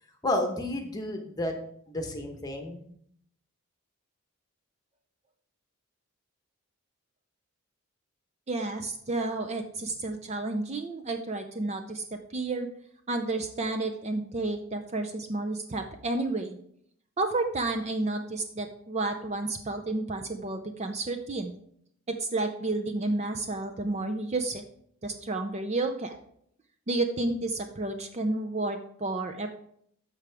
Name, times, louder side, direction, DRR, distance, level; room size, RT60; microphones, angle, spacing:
voice 1, 0.2-1.5 1.9-2.8, left 1 dB, 15° left, 3 dB, 1.1 m, -31 dB
voice 2, 8.5-12.7 13.1-16.6 17.2-21.6 22.1-24.6 25.0-26.2 26.9-29.5, right 2 dB, 30° right, 6 dB, 0.5 m, -31 dB
13.5 x 4.8 x 3.4 m, 0.67 s
head